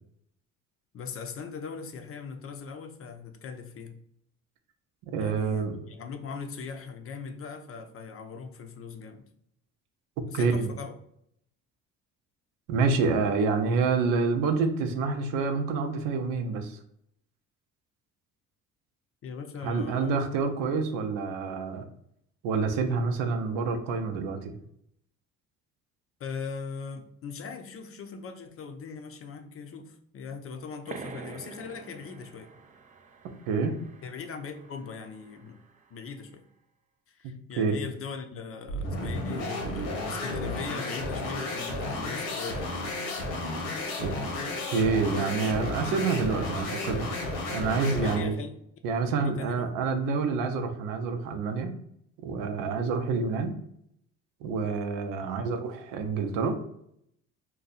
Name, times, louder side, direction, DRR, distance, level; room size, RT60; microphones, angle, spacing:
voice 1, 0.9-4.0 5.2-9.3 10.3-10.9 19.2-20.2 26.2-32.5 34.0-35.6 35.9-36.4 37.1-42.9 48.0-48.5 49.2-49.8 55.2-55.6, left 5 dB, 45° left, 6 dB, 0.5 m, -40 dB
voice 2, 5.1-5.8 10.3-10.7 12.7-16.8 19.6-21.8 22.4-24.6 33.5-33.8 37.6-37.8 44.0-44.1 44.7-47.1 47.5-48.4 48.8-51.7 52.2-53.5 54.4-56.6, right 4 dB, 85° right, 6 dB, 0.6 m, -27 dB
sound 1, 30.9-36.1, right 5 dB, 25° right, 0.3 m, -47 dB
sound 2, 38.7-48.3, left 2 dB, 85° left, 1.0 m, -33 dB
2.7 x 2.2 x 3.9 m, 0.72 s
cardioid pair, 90°, 33 cm